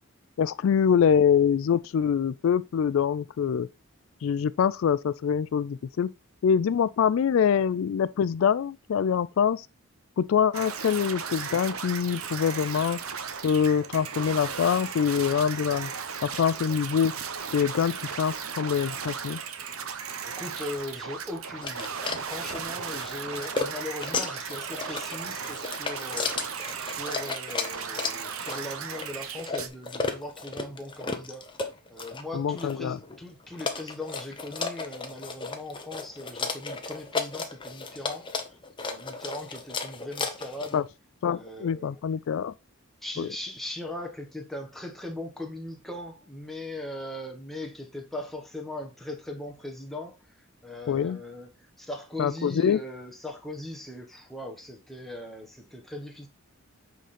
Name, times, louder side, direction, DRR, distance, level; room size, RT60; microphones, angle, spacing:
voice 1, 0.4-3.7 4.2-6.1 6.4-9.7 10.2-13.0 13.4-15.9 16.2-17.1 17.5-19.4 32.3-33.0 40.7-40.8 41.2-42.5 43.2-43.3 50.9-51.2 52.2-52.8, left 7 dB, 65° left, 0.3 m, -24 dB
sound 1, 10.5-29.7, right 6 dB, 75° right, 0.9 m, -36 dB
voice 2, 20.2-21.9 22.2-26.5 26.8-31.4 31.9-38.3 38.8-40.8 41.2-42.0 43.0-50.2 50.6-51.5 51.8-56.3, left 1 dB, ahead, 1.1 m, -39 dB
sound 2, 21.6-40.8, left 4 dB, 20° left, 0.8 m, -34 dB
8.1 x 3.8 x 4.2 m
head